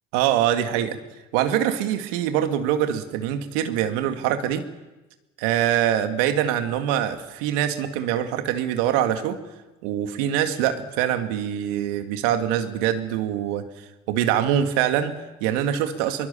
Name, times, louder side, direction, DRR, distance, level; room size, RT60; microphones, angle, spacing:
voice 1, 0.1-1.0 1.3-4.6 5.4-9.4 9.8-13.6 14.1-16.3, right 10 dB, 75° right, 7 dB, 2.1 m, -24 dB
23.0 x 22.0 x 7.0 m, 1.1 s
hypercardioid pair, 65°, 37 cm